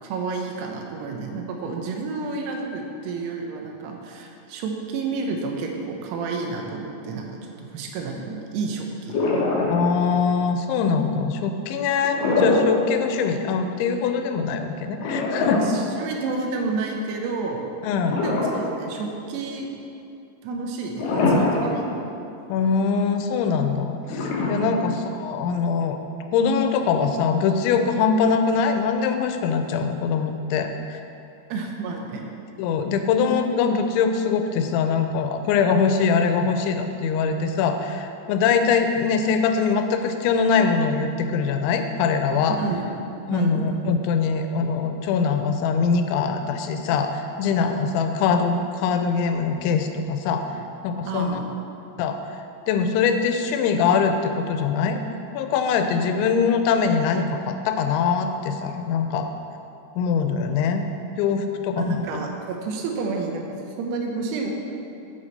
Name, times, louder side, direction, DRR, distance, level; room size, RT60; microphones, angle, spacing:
voice 1, 0.0-7.3 7.6-9.2 15.5-17.7 18.2-19.7 20.4-22.1 24.6-24.8 31.5-32.3 42.6-42.9 43.3-43.7 50.6-50.7 51.1-51.5 61.8-64.5, right 4 dB, 75° right, 1 dB, 2.8 m, -30 dB
sound 1, 9.1-10.1 12.0-12.8 13.2-13.3 15.0-16.5 18.0-18.9 19.4-19.5 21.0-21.9 22.3-22.4 24.0-25.1, left 2 dB, 65° left, 2.2 m, -23 dB
voice 2, 9.7-15.6 17.8-18.2 22.5-24.9 25.2-26.0 26.3-31.0 32.6-42.6 43.3-50.4 50.8-51.4 52.0-52.2 52.7-59.3 60.0-60.8 61.2-62.0, left 5 dB, 90° left, 6 dB, 3.0 m, -23 dB
8.6 x 7.7 x 4.2 m, 2.7 s
omnidirectional pair, 5.2 m